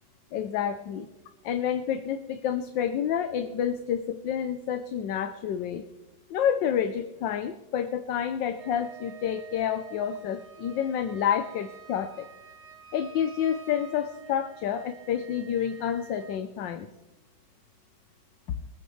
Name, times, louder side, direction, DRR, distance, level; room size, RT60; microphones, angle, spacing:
voice 1, 0.3-1.1 1.4-5.8 6.3-12.3 12.9-16.9, left 9 dB, 80° left, 9 dB, 1.4 m, -29 dB
Wind instrument woodwind instrument, 8.5-16.4, right 7 dB, 70° right, 2.4 m, -49 dB
23.5 x 9.0 x 3.2 m, 1.1 s
omnidirectional pair, 2.0 m